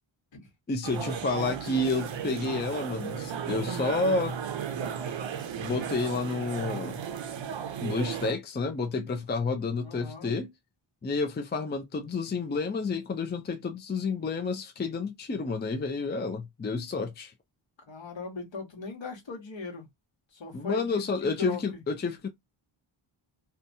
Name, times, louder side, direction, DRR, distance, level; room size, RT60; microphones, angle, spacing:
voice 1, 0.7-4.4 5.6-7.0 7.8-10.5 11.0-17.3 20.5-22.3, left 3 dB, 25° left, 0.4 m, -30 dB
sound 1, 0.8-8.3, right 8 dB, 65° right, 0.5 m, -35 dB
voice 2, 9.8-10.3 17.8-19.9 20.3-21.8, left 3 dB, 65° left, 1.3 m, -39 dB
2.8 x 2.2 x 2.6 m
wide cardioid pair, 115°, 49 cm